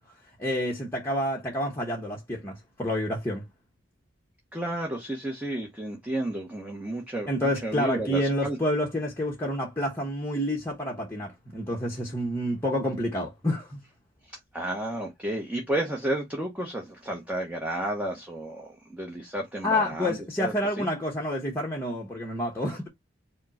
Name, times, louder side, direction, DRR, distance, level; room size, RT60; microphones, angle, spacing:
voice 1, 0.4-3.5 7.3-13.8 19.6-22.9, left 1 dB, 15° left, 0.9 m, -28 dB
voice 2, 4.5-8.6 14.2-20.9, right 1 dB, 10° right, 0.9 m, -32 dB
5.0 x 2.2 x 4.1 m
head